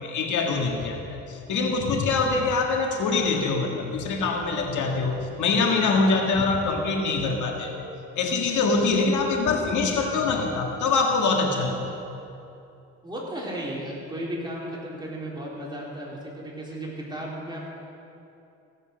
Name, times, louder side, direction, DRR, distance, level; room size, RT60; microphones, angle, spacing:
voice 1, 0.0-7.8 8.1-11.8, left 3 dB, 75° left, 2 dB, 1.7 m, -24 dB
voice 2, 13.0-17.7, right 1 dB, 15° right, -5 dB, 3.9 m, -34 dB
16.0 x 8.4 x 6.4 m, 2.7 s
cardioid pair, 90°, 30 cm